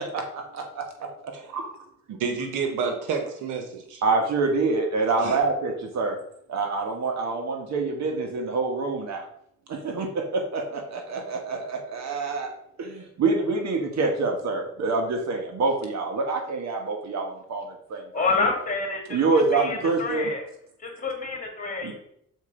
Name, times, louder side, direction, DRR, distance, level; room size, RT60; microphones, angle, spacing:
voice 1, 0.0-1.1 4.0-6.2 6.5-9.2 9.7-12.5 12.8-18.3 19.1-20.3 21.8-21.9, right 3 dB, 65° right, 3 dB, 1.6 m, -26 dB
voice 2, 2.2-4.0 5.2-5.4, right 5 dB, 90° right, 5 dB, 1.2 m, -29 dB
voice 3, 18.1-20.4 20.8-21.9, left 3 dB, 25° left, 1 dB, 2.4 m, -28 dB
6.3 x 4.4 x 5.1 m, 0.71 s
cardioid pair, 90°, 30 cm